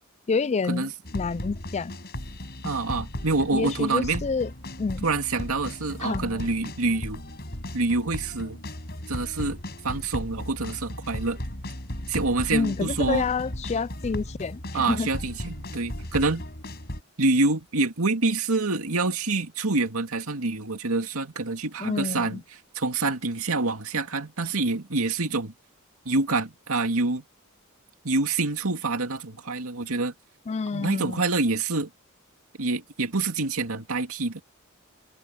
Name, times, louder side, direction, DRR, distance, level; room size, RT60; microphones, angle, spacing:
voice 1, 0.3-1.9 3.5-4.5 4.8-5.0 6.0-6.5 12.5-15.1 21.8-22.4 30.5-31.2, left 4 dB, 30° left, 0.3 m, -28 dB
sound 1, 1.0-17.0, left 1 dB, 50° left, 5.7 m, -36 dB
voice 2, 2.6-4.3 5.0-7.2 7.7-8.6 9.1-9.6 9.8-11.4 12.1-13.3 14.7-16.4 17.2-22.4 22.7-25.5 26.1-27.2 28.0-30.1 30.7-31.9 32.6-34.4, right 3 dB, 85° right, 2.3 m, -26 dB
head